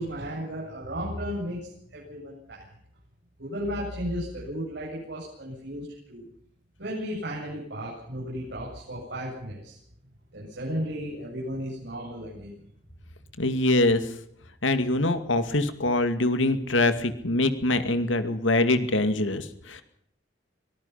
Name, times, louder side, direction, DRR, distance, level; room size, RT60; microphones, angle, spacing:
voice 1, 0.0-2.7 3.4-6.3 6.8-9.8 10.3-12.6, equal, 60° right, -4 dB, 7.9 m, -34 dB
voice 2, 13.4-14.0 14.6-19.8, left 2 dB, 90° left, 9 dB, 2.3 m, -24 dB
24.0 x 20.0 x 5.8 m, 0.70 s
head